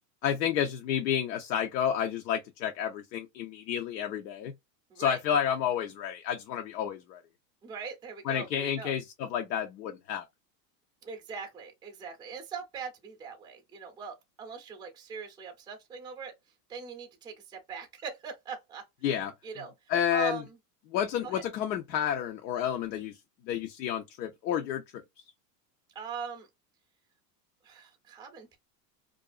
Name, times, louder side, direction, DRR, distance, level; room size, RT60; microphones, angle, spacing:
voice 1, 0.2-4.5 5.0-7.2 8.3-10.2 19.0-19.3 19.9-20.4 20.9-23.1 23.5-24.8, left 9 dB, 85° left, 0.7 m, -30 dB
voice 2, 4.9-5.4 7.6-8.9 11.0-16.4 16.7-18.8 19.4-20.6 21.2-21.4 25.9-26.5 27.6-28.6, right 6 dB, 10° right, 0.5 m, -41 dB
2.5 x 2.3 x 2.3 m
supercardioid pair, 125°, 49 cm